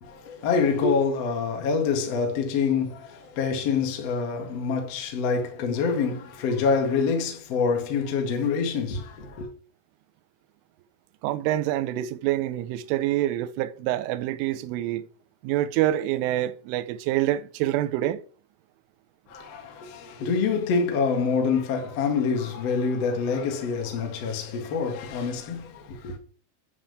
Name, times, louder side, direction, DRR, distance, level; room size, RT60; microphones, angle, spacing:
voice 1, 0.0-9.5 19.3-26.2, left 5 dB, 55° left, 1.7 m, -26 dB
voice 2, 11.2-15.0 15.4-18.2, right 13 dB, 80° right, 3.1 m, -26 dB
10.0 x 3.7 x 7.2 m
omnidirectional pair, 5.8 m